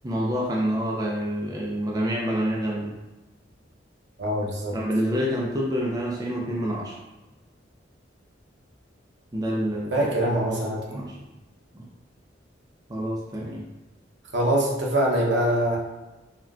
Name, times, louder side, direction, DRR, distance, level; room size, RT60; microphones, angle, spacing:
voice 1, 0.0-3.0 4.7-6.9 9.3-9.9 10.5-11.2 11.7-11.9 12.9-13.7, equal, 20° right, -3 dB, 0.3 m, -27 dB
voice 2, 4.2-4.8 9.9-10.8 14.3-15.8, right 1 dB, 70° right, -3 dB, 0.7 m, -23 dB
3.6 x 2.2 x 2.3 m, 1.1 s
head